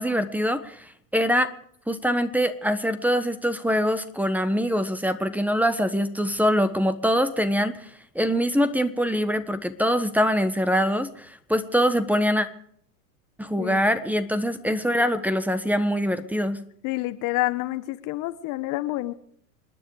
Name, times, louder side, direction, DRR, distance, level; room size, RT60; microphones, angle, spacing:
voice 1, 0.0-1.5 1.9-7.9 8.1-12.5 13.4-16.6, equal, 5° right, 12 dB, 1.3 m, -24 dB
voice 2, 16.8-19.1, left 18 dB, 45° left, 12 dB, 1.3 m, -28 dB
28.0 x 10.0 x 4.9 m, 0.66 s
hypercardioid pair, 100°, 44 cm